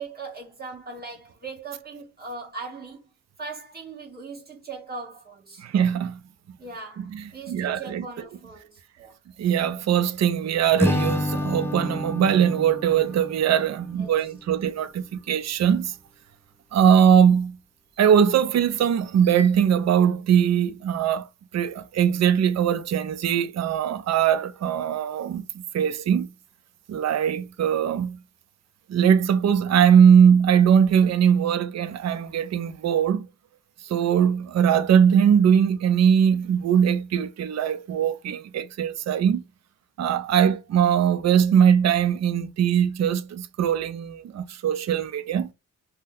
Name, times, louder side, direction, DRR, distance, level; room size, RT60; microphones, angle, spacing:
voice 1, 0.0-3.0 3.4-5.6 6.6-9.2 14.0-14.3, right 4 dB, 30° right, 1.4 m, -39 dB
voice 2, 5.6-6.2 7.0-8.1 9.4-15.9 16.7-17.6 18.0-21.3 21.5-26.3 26.9-28.2 28.9-33.3 33.8-39.4 40.0-45.5, right 8 dB, 60° right, 0.4 m, -21 dB
Acoustic guitar / Strum, 10.8-14.1, left 1 dB, 10° left, 0.3 m, -28 dB
2.7 x 2.1 x 3.5 m
cardioid pair, 85°, 31 cm